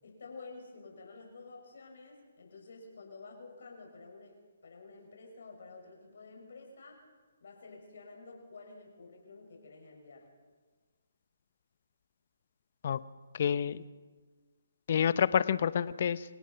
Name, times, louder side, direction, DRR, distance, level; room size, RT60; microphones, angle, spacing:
voice 1, 0.0-4.4 4.6-7.0 7.4-10.3, left 3 dB, 65° left, 2 dB, 6.9 m, -50 dB
voice 2, 13.3-13.8 14.9-16.2, left 8 dB, 50° left, 16 dB, 0.8 m, -28 dB
27.5 x 17.5 x 5.8 m, 1.4 s
hypercardioid pair, 155°, 0 cm